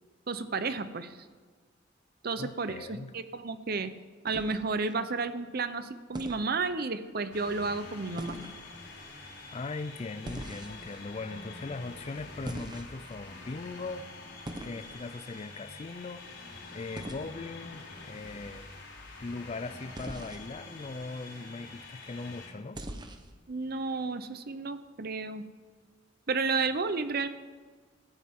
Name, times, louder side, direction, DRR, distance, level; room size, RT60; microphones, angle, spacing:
voice 1, 0.3-1.2 2.2-3.9 4.2-8.4 23.5-25.4 26.3-27.3, right 4 dB, 50° right, 12 dB, 0.7 m, -32 dB
voice 2, 2.4-3.1 9.5-14.1 14.6-16.3 16.7-18.7 19.2-22.8, left 3 dB, 30° left, 14 dB, 0.4 m, -40 dB
sound 1, 4.3-4.9 6.1-6.5 8.2-8.6 10.2-11.0 12.4-13.2 14.4-14.8 17.0-17.2 19.9-20.5 22.7-23.3, right 1 dB, 20° right, 1.0 m, -41 dB
sound 2, 7.3-22.5, left 3 dB, 60° left, 3.9 m, -46 dB
17.0 x 13.5 x 3.7 m, 1.5 s
head